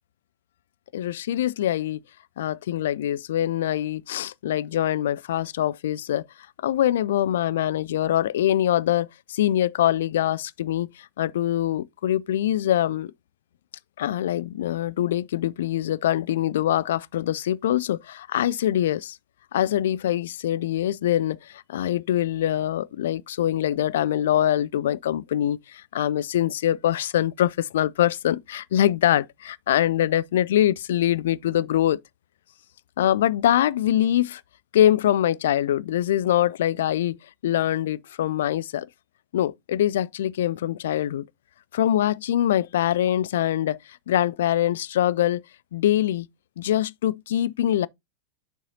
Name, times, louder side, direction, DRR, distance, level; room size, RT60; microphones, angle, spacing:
voice 1, 0.9-2.0 2.4-6.3 6.6-13.1 14.0-19.2 19.5-32.0 33.0-34.4 34.7-37.2 37.4-38.9 39.3-41.3 41.7-45.4 45.7-46.3 46.6-47.9, left 12 dB, 60° left, 0.3 m, -24 dB
6.9 x 6.3 x 2.7 m
figure-of-eight pair, 90°, 0 cm